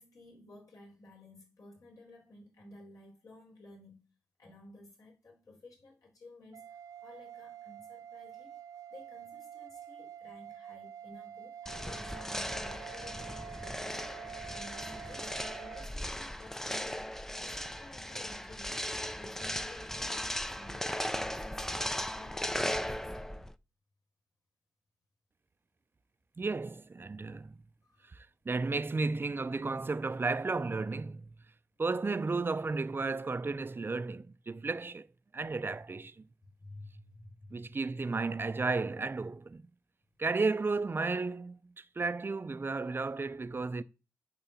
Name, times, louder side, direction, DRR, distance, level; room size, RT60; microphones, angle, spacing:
voice 1, 0.0-4.1 4.4-8.6 8.9-14.1 14.5-18.8 19.2-23.2 27.8-28.1 36.6-37.7, left 2 dB, 70° left, 4.2 m, -54 dB
sound 1, 6.5-15.9, right 9 dB, 80° right, 0.5 m, -47 dB
sound 2, 11.7-23.5, left 1 dB, 5° left, 0.5 m, -37 dB
voice 2, 26.4-27.6 28.0-31.3 31.8-35.1 35.3-36.3 37.5-39.6 40.2-43.8, right 3 dB, 35° right, 0.6 m, -33 dB
8.9 x 3.9 x 7.0 m
cardioid pair, 70°, 6 cm